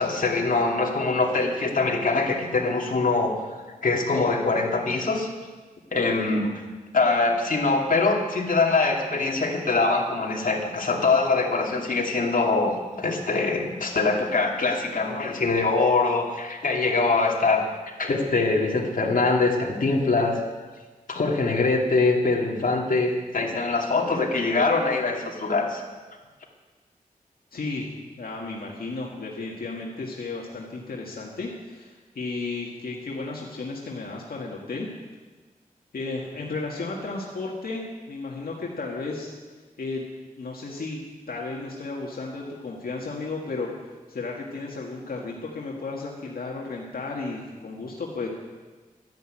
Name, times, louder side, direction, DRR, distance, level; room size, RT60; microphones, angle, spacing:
voice 1, 0.0-3.4 3.8-5.3 5.9-6.5 6.9-17.7 18.0-20.4 21.1-25.8, left 3 dB, 65° left, -1 dB, 2.5 m, -23 dB
voice 2, 27.5-27.9 28.2-34.9 35.9-39.3 39.8-40.1 40.4-41.0 41.3-43.7 44.1-48.3, left 3 dB, 85° left, -2 dB, 1.8 m, -33 dB
12.5 x 10.5 x 8.9 m, 1.3 s
wide cardioid pair, 115°, 15 cm